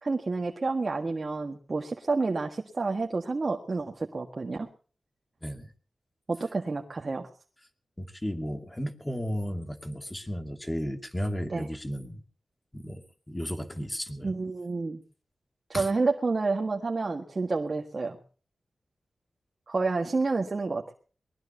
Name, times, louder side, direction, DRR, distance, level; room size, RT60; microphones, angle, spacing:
voice 1, 0.0-4.7 6.3-7.3 11.5-11.7 14.2-15.0 15.7-18.2 19.7-20.9, right 3 dB, 40° right, 2 dB, 1.7 m, -29 dB
voice 2, 8.0-12.2 12.7-14.3 15.7-15.9, equal, 15° left, 6 dB, 2.5 m, -34 dB
23.0 x 20.5 x 2.9 m, 0.41 s
wide cardioid pair, 100°, 0 cm